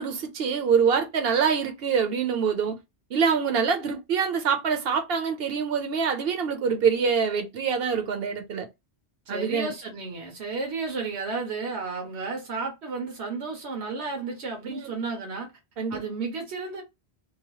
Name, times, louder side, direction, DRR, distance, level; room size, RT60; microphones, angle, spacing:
voice 1, 0.0-2.8 3.1-8.7 9.3-9.7 14.7-14.8 15.8-16.0, right 6 dB, 65° right, 0.9 m, -25 dB
voice 2, 9.3-15.5 15.9-16.8, right 4 dB, 85° right, 1.2 m, -32 dB
2.9 x 2.1 x 3.0 m
omnidirectional pair, 1.1 m